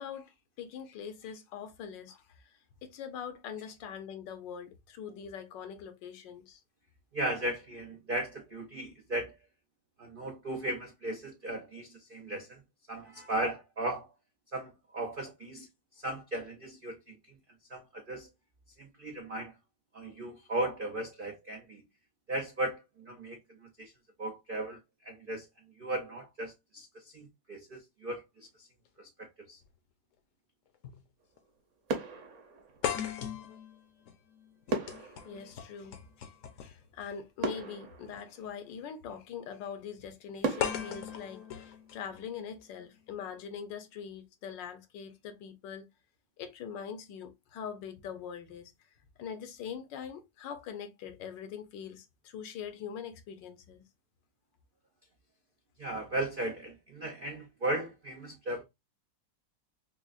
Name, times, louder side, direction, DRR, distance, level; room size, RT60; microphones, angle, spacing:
voice 1, 0.0-6.6 35.0-36.3 36.6-45.9 46.4-48.7 49.2-53.8, left 7 dB, 80° left, 1.4 m, -43 dB
voice 2, 7.1-9.4 10.0-12.6 12.9-14.1 14.5-17.3 17.7-18.3 18.8-19.5 19.9-21.8 22.3-23.9 24.2-25.5 25.8-28.7 29.0-29.6 55.8-58.6, right 1 dB, 90° right, 0.4 m, -37 dB
sound 1, 29.6-29.7 30.8-31.0 31.4-31.5 32.8-36.9 38.0-38.2 40.6-42.6, left 9 dB, 65° left, 0.8 m, -38 dB
sound 2, 31.2-31.6 31.9-33.3 34.7-36.6 37.0-37.1 37.4-39.0 39.5-39.6 40.4-42.3 42.6-42.9, right 3 dB, 50° right, 1.0 m, -38 dB
5.9 x 2.0 x 2.4 m
omnidirectional pair, 1.9 m